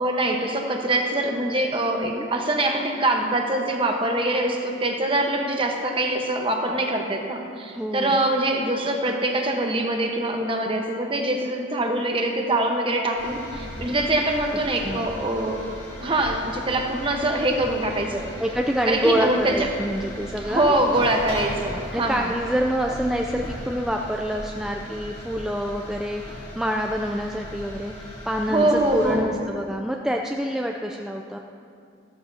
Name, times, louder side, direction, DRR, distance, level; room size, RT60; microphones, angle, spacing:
voice 1, 0.0-15.6 16.0-18.3 18.8-19.7 20.4-22.3 28.5-29.3, right 1 dB, 25° right, 2 dB, 1.0 m, -24 dB
voice 2, 7.7-8.2 14.8-15.1 18.4-20.8 21.9-31.4, equal, 5° right, 1 dB, 0.3 m, -27 dB
sound 1, 13.2-29.2, equal, 30° left, 2.6 m, -38 dB
14.0 x 13.5 x 2.8 m, 2.4 s
head